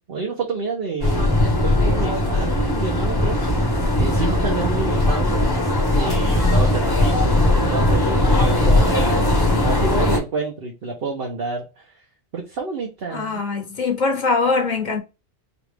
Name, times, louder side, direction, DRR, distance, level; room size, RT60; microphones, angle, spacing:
voice 1, 0.1-5.5 5.9-12.0 12.3-13.4, right 4 dB, 50° right, 1.0 m, -29 dB
sound 1, 1.0-10.2, left 1 dB, 20° left, 0.9 m, -19 dB
voice 2, 13.1-15.0, left 4 dB, 40° left, 1.0 m, -22 dB
5.0 x 2.4 x 3.3 m
omnidirectional pair, 1.3 m